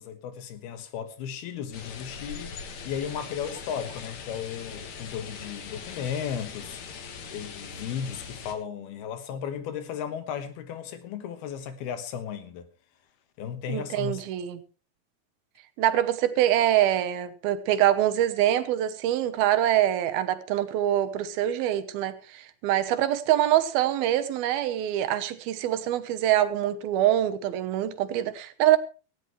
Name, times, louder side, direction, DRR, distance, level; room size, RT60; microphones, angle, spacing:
voice 1, 0.0-6.8 7.3-12.7 13.4-14.2, left 8 dB, 80° left, 3.3 m, -35 dB
sound 1, 1.7-8.5, left 5 dB, 55° left, 2.5 m, -41 dB
voice 2, 13.7-14.6 15.8-28.8, right 12 dB, 75° right, 2.8 m, -24 dB
18.0 x 14.5 x 3.2 m
omnidirectional pair, 4.5 m